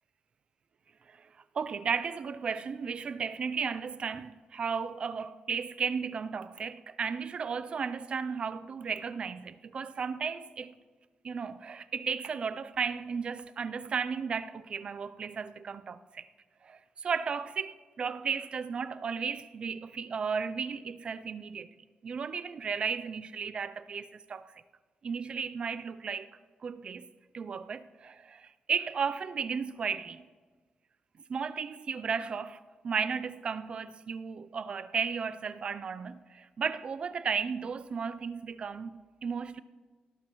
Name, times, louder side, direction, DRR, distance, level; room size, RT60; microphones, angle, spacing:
voice 1, 1.5-10.7 11.2-16.3 16.6-21.7 22.0-24.5 25.0-26.3 26.6-27.1 27.3-30.2 31.3-38.9 39.2-39.6, right 6 dB, 40° right, 0.4 m, -34 dB
18.0 x 11.5 x 3.0 m
wide cardioid pair, 150°, 3 cm